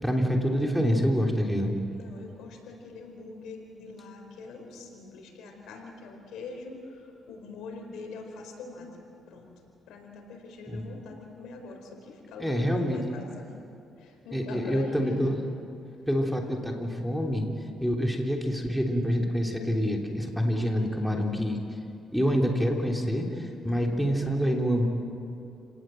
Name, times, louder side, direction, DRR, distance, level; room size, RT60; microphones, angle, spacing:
voice 1, 0.0-1.7 10.7-10.8 12.4-13.0 14.3-15.4 16.1-17.4 17.8-21.6 22.1-23.3 23.6-24.9, equal, ahead, 0 dB, 3.3 m, -26 dB
voice 2, 1.9-8.9 9.3-9.5 9.9-13.6 14.0-15.3 23.6-24.4, left 3 dB, 85° left, 2 dB, 4.7 m, -43 dB
30.0 x 18.5 x 7.7 m, 2.7 s
cardioid pair, 90°, 0 cm